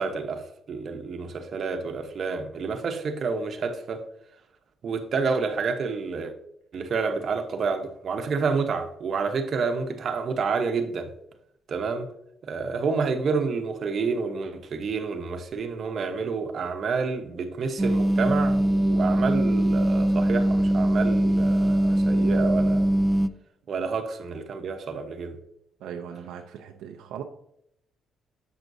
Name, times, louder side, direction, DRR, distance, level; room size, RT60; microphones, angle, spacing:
voice 1, 0.0-4.0 4.8-6.3 6.7-11.1 11.7-12.1 12.4-22.9 23.7-25.4, right 4 dB, 55° right, 0.8 m, -29 dB
sound 1, 17.8-23.3, right 1 dB, 15° right, 0.3 m, -22 dB
voice 2, 25.8-27.2, right 8 dB, 85° right, 0.5 m, -39 dB
7.2 x 6.0 x 2.6 m
cardioid pair, 90°, 0 cm